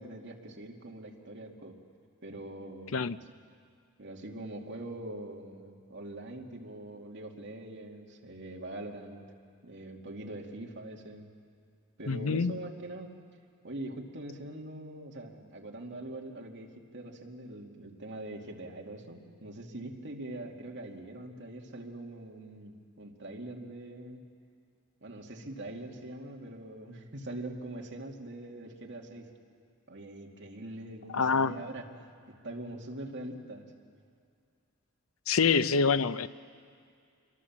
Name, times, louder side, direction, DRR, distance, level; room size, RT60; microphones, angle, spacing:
voice 1, 0.0-1.8 2.2-3.2 4.0-9.2 9.6-11.3 12.0-13.1 13.6-24.2 25.0-29.3 29.9-31.9 32.3-33.7, right 1 dB, 60° right, 2.5 m, -43 dB
voice 2, 12.1-12.6 31.1-31.5 35.3-36.3, left 5 dB, 85° left, 0.6 m, -26 dB
27.5 x 23.0 x 7.4 m
head